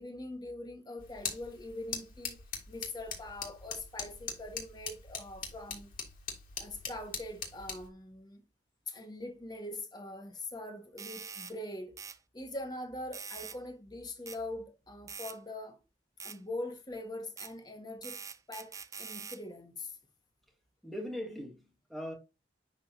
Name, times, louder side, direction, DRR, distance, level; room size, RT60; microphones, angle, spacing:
voice 1, 0.0-2.4 2.7-5.9 6.6-8.4 8.9-12.0 12.3-15.8 16.2-18.2 18.5-20.0, left 1 dB, 25° left, 1.4 m, -42 dB
sound 1, 1.0-7.9, left 6 dB, 50° left, 2.1 m, -42 dB
sound 2, 11.0-11.5 12.0-12.2 13.1-13.6 14.3-14.4 15.1-15.4 16.2-16.4 17.4-17.5 18.0-19.4, right 6 dB, 20° right, 0.4 m, -44 dB
voice 2, 20.8-22.1, left 1 dB, ahead, 1.8 m, -40 dB
10.5 x 3.7 x 2.8 m
head